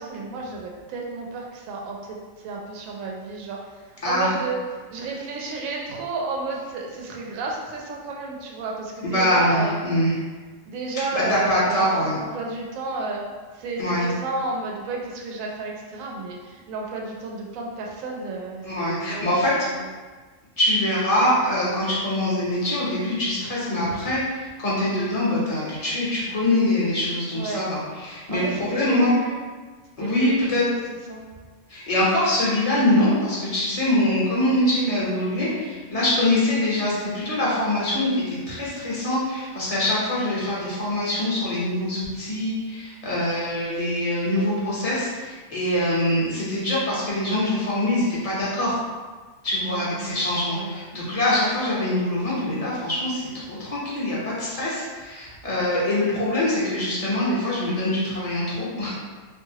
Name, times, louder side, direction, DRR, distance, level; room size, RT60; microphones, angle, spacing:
voice 1, 0.0-2.2 2.4-3.6 4.0-4.6 4.9-9.8 10.7-13.2 13.5-19.5 27.3-27.7 28.3-29.4 30.0-30.8 31.1-31.2 49.7-50.7, right 3 dB, 80° right, -1 dB, 1.0 m, -32 dB
voice 2, 4.0-4.3 9.0-10.1 10.9-12.1 13.8-14.1 18.6-19.5 20.6-29.1 30.0-30.6 31.7-48.8 49.4-58.9, left 1 dB, 30° left, -7 dB, 0.8 m, -24 dB
2.8 x 2.6 x 2.8 m, 1.4 s
omnidirectional pair, 1.4 m